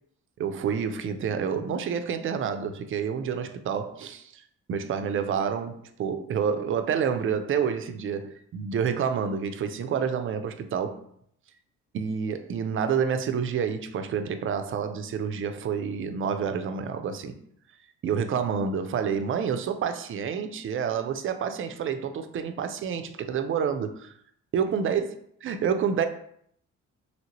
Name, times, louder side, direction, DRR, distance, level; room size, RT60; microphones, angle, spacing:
voice 1, 0.4-4.4 4.7-11.1 11.9-17.4 18.0-24.1 24.5-25.1 25.4-26.1, right 7 dB, 45° right, 8 dB, 0.4 m, -28 dB
2.9 x 2.7 x 2.9 m, 0.68 s
cardioid pair, 90°, 30 cm